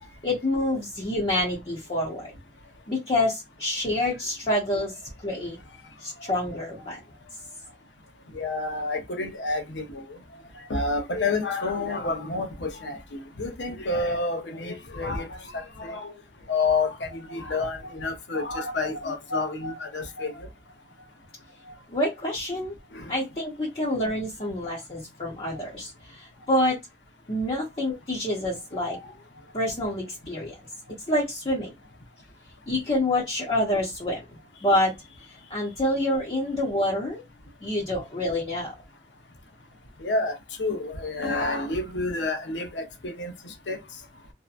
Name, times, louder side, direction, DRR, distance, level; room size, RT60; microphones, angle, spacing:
voice 1, 0.2-2.3 2.9-4.9 5.2-5.6 6.0-7.0 21.9-22.7 23.1-25.9 26.5-26.8 27.3-29.0 29.5-30.5 31.1-31.7 32.7-34.2 34.6-34.9 35.5-37.2 37.6-38.7, left 1 dB, 35° left, 0.7 m, -27 dB
voice 2, 8.3-10.0 10.7-16.1 16.5-20.5 22.9-23.1 28.8-29.0 40.0-40.3 40.6-43.8, left 3 dB, 85° left, 0.7 m, -29 dB
2.7 x 2.2 x 2.4 m
head